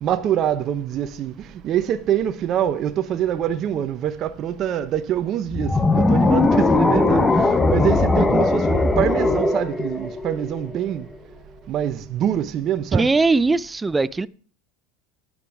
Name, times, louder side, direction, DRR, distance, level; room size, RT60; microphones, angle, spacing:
voice 1, 0.0-11.1 11.7-13.1, right 10 dB, 40° right, 0.9 m, -25 dB
sound 1, 5.5-10.8, left 2 dB, 15° left, 1.0 m, -19 dB
voice 2, 12.9-14.3, right 3 dB, 15° right, 0.4 m, -19 dB
11.5 x 9.0 x 4.8 m
supercardioid pair, 125°, 0 cm